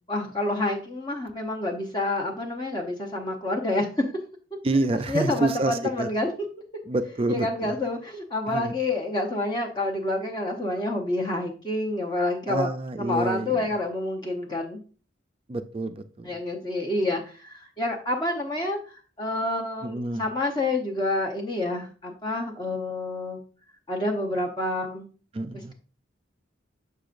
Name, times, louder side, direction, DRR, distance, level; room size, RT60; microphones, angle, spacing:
voice 1, 0.1-3.9 5.1-6.3 7.3-12.7 13.0-14.8 16.2-23.4 23.9-25.1 25.5-25.7, left 2 dB, 20° left, -1 dB, 0.9 m, -28 dB
voice 2, 4.6-6.1 6.9-7.7 8.5-8.7 12.5-13.6 15.5-16.3 19.8-20.2 25.3-25.7, right 2 dB, 30° right, 8 dB, 0.4 m, -28 dB
6.7 x 6.6 x 2.5 m, 0.38 s
head